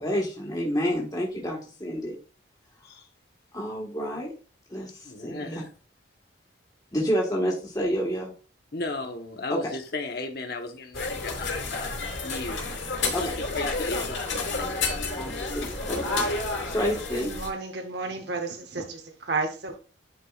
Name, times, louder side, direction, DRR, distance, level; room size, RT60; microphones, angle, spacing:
voice 1, 0.0-2.1 3.5-4.3 4.7-4.9 5.2-5.6 6.9-8.3 9.5-9.6 13.1-13.3 15.2-16.3 16.7-17.3, equal, 20° left, 1.4 m, -29 dB
voice 2, 5.0-5.7 8.7-12.6 13.0-15.1, left 3 dB, 50° left, 1.0 m, -36 dB
sound 1, 10.9-17.5, left 3 dB, 85° left, 3.0 m, -30 dB
voice 3, 17.1-19.8, right 3 dB, 55° right, 0.9 m, -32 dB
9.9 x 4.7 x 2.4 m
head